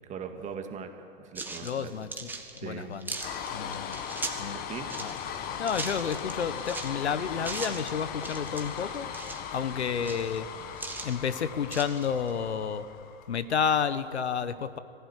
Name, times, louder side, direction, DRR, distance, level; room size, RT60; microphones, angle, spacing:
voice 1, 0.0-0.9 1.2-1.9 2.6-2.9 4.5-4.9, right 6 dB, 20° right, 5 dB, 2.0 m, -40 dB
sound 1, 1.3-4.5 4.8-6.9 7.4-7.9 8.2-9.5 9.9-11.2 11.7-12.3, right 3 dB, 5° right, 1.8 m, -39 dB
voice 2, 1.6-3.2 3.5-4.0 4.4-4.6 5.0-5.1 5.6-10.5 11.0-12.8 13.3-14.8, left 7 dB, 85° left, 14 dB, 1.3 m, -31 dB
sound 2, 3.2-13.5, left 8 dB, 30° left, 1.5 m, -38 dB
21.0 x 15.5 x 9.8 m, 2.6 s
hypercardioid pair, 130°, 32 cm